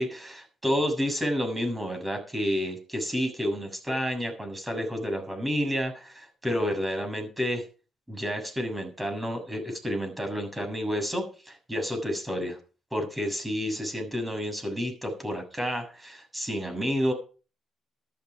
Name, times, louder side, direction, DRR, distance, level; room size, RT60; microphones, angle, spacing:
voice 1, 0.0-7.6 8.1-12.6 12.9-17.1, equal, 10° right, 5 dB, 6.8 m, -30 dB
14.0 x 12.0 x 5.1 m, 0.37 s
cardioid pair, 90°, 0 cm